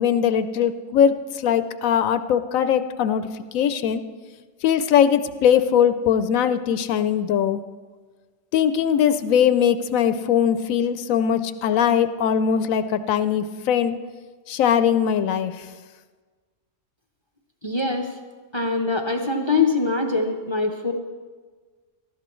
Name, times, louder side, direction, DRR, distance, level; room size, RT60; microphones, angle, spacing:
voice 1, 0.0-4.0 4.6-7.6 8.5-14.0 14.5-15.7, left 8 dB, 85° left, 11 dB, 1.0 m, -21 dB
voice 2, 17.6-18.1 18.5-20.9, left 3 dB, 25° left, 3 dB, 0.7 m, -23 dB
18.5 x 13.5 x 3.1 m, 1.4 s
omnidirectional pair, 1.4 m